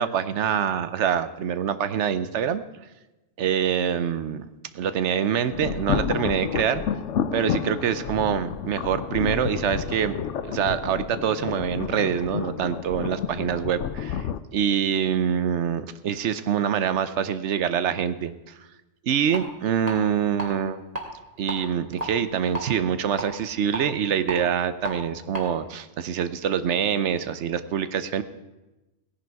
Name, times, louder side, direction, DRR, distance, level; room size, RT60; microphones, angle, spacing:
voice 1, 0.0-2.6 3.4-4.5 4.7-6.8 7.3-10.2 10.4-14.3 14.5-18.3 19.0-20.8 21.4-28.2, right 8 dB, 75° right, 13 dB, 1.0 m, -25 dB
sound 1, 5.5-14.4, left 8 dB, 80° left, 1.0 m, -30 dB
sound 2, 19.3-19.4 19.9-20.5 20.8-21.0 21.5-22.6 23.2-24.9 25.3-25.4, right 1 dB, 30° right, 2.3 m, -32 dB
16.5 x 10.5 x 4.7 m, 1.0 s
omnidirectional pair, 1.2 m